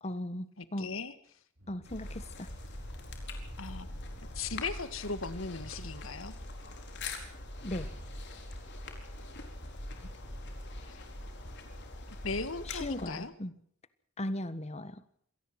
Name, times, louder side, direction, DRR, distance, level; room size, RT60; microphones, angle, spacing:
voice 1, 0.0-1.0 1.7-2.5 7.6-7.9 12.6-13.5 14.2-15.0, left 1 dB, 35° left, 14 dB, 1.5 m, -37 dB
voice 2, 0.6-1.1 3.6-3.9 4.4-6.3 9.2-9.5 12.2-13.3, left 4 dB, 75° left, 13 dB, 1.9 m, -38 dB
sound 1, 1.6-8.8, equal, 85° right, 6.0 m, -55 dB
sound 2, 1.8-13.3, left 2 dB, 60° left, 4.5 m, -43 dB
26.5 x 18.0 x 6.0 m, 0.63 s
head